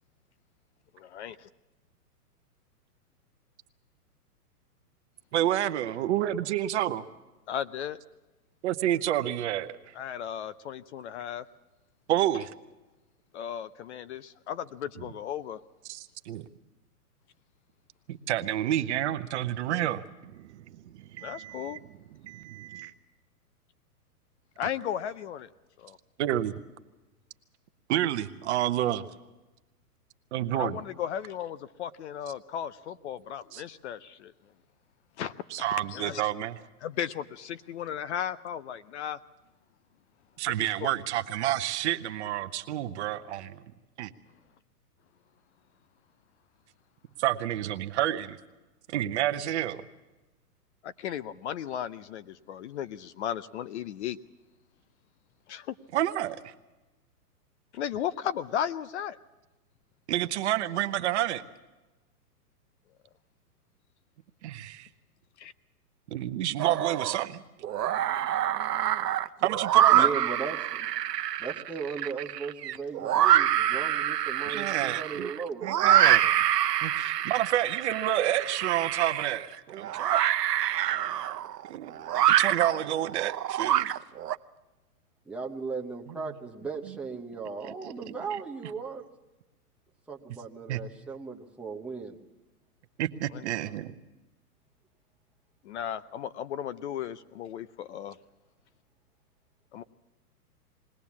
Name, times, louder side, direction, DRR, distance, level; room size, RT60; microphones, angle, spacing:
voice 1, 0.9-1.3 7.5-8.0 10.0-11.4 13.3-15.6 21.2-21.8 24.6-25.5 25.8-26.0 30.5-34.3 35.2-36.2 36.8-39.2 40.6-40.9 50.8-54.2 55.5-55.7 57.7-59.2 65.4-65.5 93.3-93.4 95.6-98.2 99.7-99.8, left 9 dB, 45° left, 17 dB, 0.6 m, -35 dB
voice 2, 5.3-7.0 8.6-9.9 12.1-12.5 15.0-15.1 15.8-16.4 18.1-21.8 22.1-22.9 26.2-26.6 27.9-29.1 30.3-30.8 33.5-33.6 35.5-36.6 40.4-43.6 44.0-44.1 47.2-48.4 48.9-49.8 55.9-56.5 60.1-61.4 64.4-64.9 66.1-67.4 69.4-70.1 74.5-75.3 75.6-76.4 76.8-79.5 79.8-80.2 81.7-83.9 86.9-87.0 87.6-88.2 90.7-90.8 93.0-93.9, right 12 dB, 45° right, 10 dB, 0.9 m, -29 dB
sound 1, 66.6-67.3 67.6-84.3, right 12 dB, 85° right, 0.8 m, -26 dB
voice 3, 69.9-70.9 71.4-75.6 85.3-89.1 90.1-92.2, right 5 dB, 5° right, -1 dB, 0.9 m, -37 dB
21.5 x 17.5 x 7.2 m, 1.1 s
hypercardioid pair, 140°, 47 cm